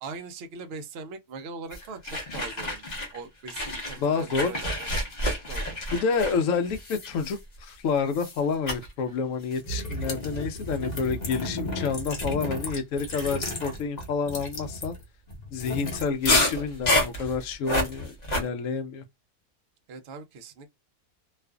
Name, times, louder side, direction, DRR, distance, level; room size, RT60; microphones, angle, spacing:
voice 1, 0.0-2.9 3.1-4.9 5.2-5.8 19.9-20.7, right 4 dB, 65° right, 0.6 m, -41 dB
sound 1, 1.7-3.2 3.5-7.7 8.1-8.4 8.7-8.9 9.5-18.4, left 1 dB, 40° left, 0.7 m, -30 dB
voice 2, 4.0-4.5 5.9-15.0 15.5-19.0, left 5 dB, 70° left, 0.9 m, -29 dB
2.4 x 2.4 x 2.3 m
omnidirectional pair, 1.6 m